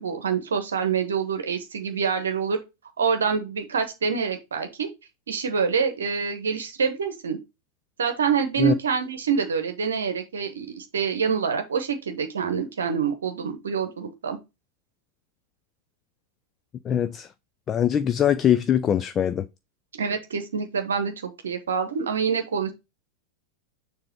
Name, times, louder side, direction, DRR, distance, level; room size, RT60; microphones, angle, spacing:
voice 1, 0.0-2.6 3.0-4.9 5.3-7.4 8.0-14.4 19.9-22.7, right 6 dB, 70° right, 0.9 m, -26 dB
voice 2, 16.8-17.3 17.7-19.5, left 9 dB, 25° left, 0.3 m, -22 dB
6.8 x 3.3 x 4.6 m
figure-of-eight pair, 90°, 0 cm